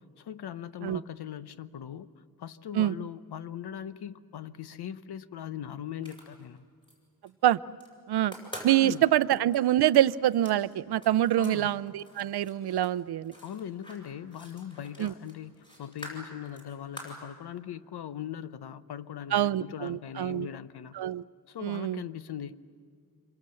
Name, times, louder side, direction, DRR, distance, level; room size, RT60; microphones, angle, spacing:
voice 1, 0.0-2.1 2.4-6.6 8.8-9.0 11.4-11.7 13.4-21.0 21.5-22.6, left 9 dB, 90° left, 14 dB, 0.9 m, -40 dB
sound 1, 5.9-6.9 7.3-7.9 8.2-11.6 11.9-17.2, equal, 10° left, 7.2 m, -47 dB
voice 2, 8.6-13.3 15.0-15.1 19.3-20.5 21.0-21.2 21.6-22.0, right 12 dB, 80° right, 17 dB, 0.6 m, -25 dB
26.5 x 25.0 x 7.7 m, 2.1 s
wide cardioid pair, 135°, 38 cm